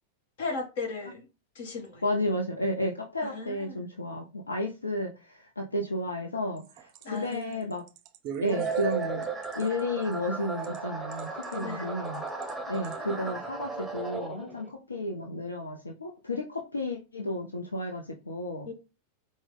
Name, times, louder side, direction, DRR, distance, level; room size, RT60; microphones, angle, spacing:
voice 1, 0.4-1.3 1.5-2.0 3.2-3.8 7.0-7.7 11.6-11.9 18.6-18.7, left 3 dB, 55° left, 1.1 m, -36 dB
voice 2, 2.0-7.8 8.4-9.2 9.5-12.2 12.7-18.7, left 1 dB, 75° left, 0.6 m, -32 dB
sound 1, 6.4-10.8 11.1-11.6 12.1-12.5 12.8-13.0, right 9 dB, 40° right, 0.4 m, -42 dB
sound 2, 8.5-14.7, right 4 dB, ahead, 0.9 m, -35 dB
4.6 x 2.1 x 3.8 m
figure-of-eight pair, 90°, 0 cm